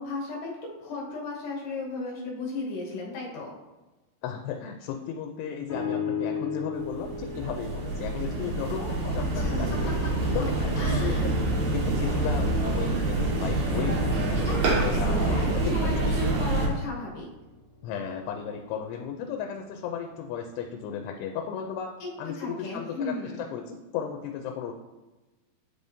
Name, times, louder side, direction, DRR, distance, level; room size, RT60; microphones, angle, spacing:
voice 1, 0.0-3.5 8.7-10.5 10.8-11.3 14.4-17.3 22.0-22.1 22.4-23.4, left 3 dB, 65° left, -4 dB, 2.3 m, -35 dB
voice 2, 4.2-9.9 10.3-10.7 11.0-11.4 11.7-15.3 15.7-16.2 17.8-24.7, left 8 dB, 85° left, 4 dB, 2.6 m, -35 dB
sound 1, 5.7-9.0 9.4-13.2 13.8-18.0 18.7-18.8, left 4 dB, 50° left, 1.0 m, -38 dB
sound 2, 6.8-16.7, right 2 dB, 70° right, 1.8 m, -26 dB
10.0 x 3.5 x 2.6 m, 1.1 s
omnidirectional pair, 4.8 m